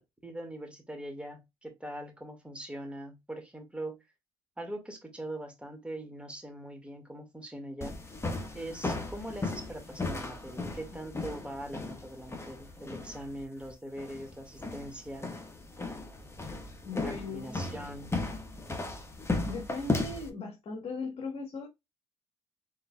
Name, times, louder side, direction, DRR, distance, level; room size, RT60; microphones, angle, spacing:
voice 1, 0.2-4.0 4.6-8.0 8.5-15.3 17.0-18.2, right 1 dB, 10° right, 2.0 m, -42 dB
sound 1, 7.8-20.3, left 3 dB, 20° left, 1.2 m, -36 dB
voice 2, 16.8-17.7 19.4-21.7, left 3 dB, 50° left, 1.3 m, -38 dB
4.5 x 3.7 x 2.3 m
supercardioid pair, 70°, 13 cm